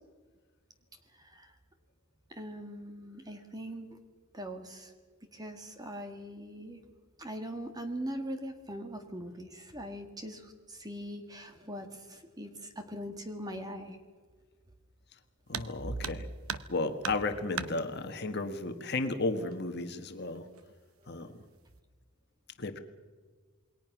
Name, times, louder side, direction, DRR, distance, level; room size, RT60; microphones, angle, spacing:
voice 1, 1.1-1.5 2.3-4.0 4.3-4.9 5.3-6.8 7.2-14.0, equal, 20° right, 6 dB, 2.0 m, -41 dB
voice 2, 15.5-16.3 16.7-20.5 21.1-21.3 22.6-22.8, left 3 dB, 50° left, 7 dB, 1.5 m, -33 dB
sound 1, 15.5-15.7 16.0-16.7 17.0-17.7 18.9-19.0 19.5-19.6 20.3-20.7 21.1-21.5, right 7 dB, 75° right, 1.0 m, -38 dB
27.5 x 21.5 x 6.1 m, 1.5 s
head